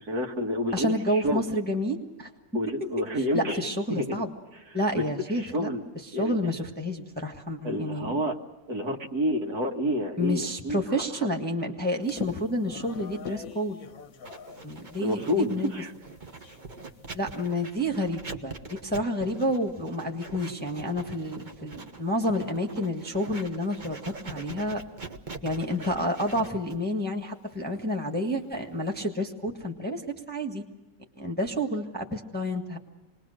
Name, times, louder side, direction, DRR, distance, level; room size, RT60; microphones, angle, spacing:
voice 1, 0.0-1.4 2.5-3.6 3.9-4.2 5.0-5.1 5.3-5.8 6.1-6.5 7.6-8.4 8.7-10.8 15.0-15.9, equal, 60° right, 2 dB, 2.3 m, -29 dB
voice 2, 0.7-2.3 3.3-4.3 4.7-5.7 6.1-8.1 10.2-13.8 14.6-15.7 17.1-18.5 18.8-24.8 25.4-30.0 30.3-30.6 31.2-32.8, equal, 5° left, 2 dB, 1.4 m, -29 dB
sound 1, 12.0-15.4 15.7-15.8 16.0-17.5, left 7 dB, 55° left, 1.3 m, -43 dB
Writing, 14.2-29.0, right 4 dB, 30° right, 1.2 m, -44 dB
27.0 x 20.5 x 6.5 m, 1.1 s
omnidirectional pair, 2.0 m